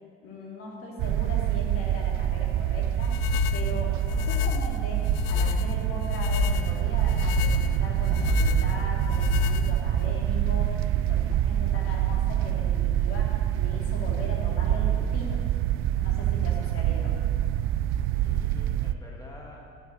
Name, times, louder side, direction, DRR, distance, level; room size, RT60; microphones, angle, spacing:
voice 1, 0.2-15.4 16.0-17.1, left 2 dB, 45° left, -2 dB, 2.8 m, -39 dB
sound 1, 1.0-19.0, right 12 dB, 45° right, 0.5 m, -26 dB
sound 2, 3.0-10.1, left 9 dB, 65° left, 0.5 m, -29 dB
Wind, 5.2-12.3, right 2 dB, 25° right, 2.0 m, -40 dB
voice 2, 18.2-19.7, left 1 dB, 10° left, -2 dB, 2.0 m, -49 dB
9.5 x 6.6 x 8.5 m, 2.1 s
hypercardioid pair, 65°, 31 cm